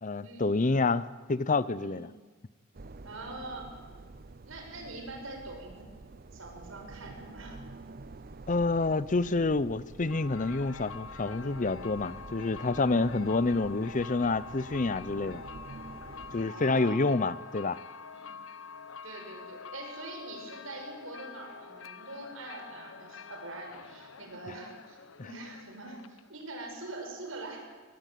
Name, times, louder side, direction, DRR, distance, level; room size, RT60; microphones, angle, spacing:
voice 1, 0.0-2.1 8.5-15.4 16.3-17.8, left 3 dB, 40° left, 17 dB, 0.7 m, -28 dB
sound 1, 2.7-16.5, right 3 dB, 45° right, 0.7 m, -48 dB
voice 2, 3.0-3.7 4.5-5.9 6.3-7.6 16.5-17.0 18.1-18.3 19.0-25.0 25.2-27.6, right 2 dB, 85° right, 2 dB, 6.8 m, -43 dB
sound 2, 10.0-26.4, left 5 dB, 80° left, 1.0 m, -47 dB
23.0 x 19.5 x 9.3 m, 1.3 s
head